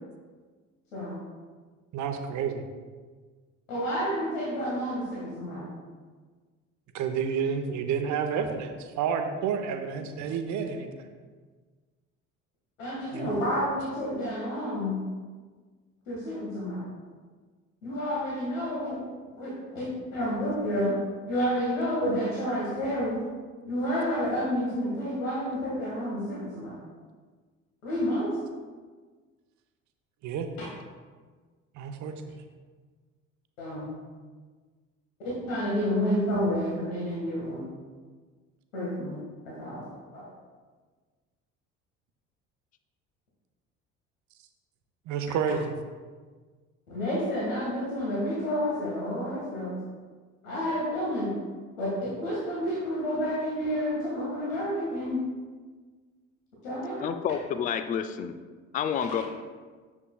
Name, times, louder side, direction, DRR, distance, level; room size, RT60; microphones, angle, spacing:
voice 1, 1.9-2.6 6.9-11.1 13.1-13.3 30.2-30.5 31.8-32.3 45.1-45.7, right 6 dB, 45° right, 7 dB, 0.8 m, -30 dB
voice 2, 3.7-5.7 12.8-15.0 16.1-16.8 17.8-19.0 19.3-21.0 21.3-23.2 23.7-26.8 27.8-28.4 33.6-33.9 35.2-37.6 38.7-39.8 40.1-40.2 46.9-49.7 50.4-51.3 51.8-55.2 56.6-57.1, equal, 75° left, -6 dB, 1.9 m, -30 dB
voice 3, 57.0-58.4 58.7-59.2, left 8 dB, 20° left, 10 dB, 0.4 m, -29 dB
9.7 x 7.1 x 2.3 m, 1.5 s
figure-of-eight pair, 60°, 40 cm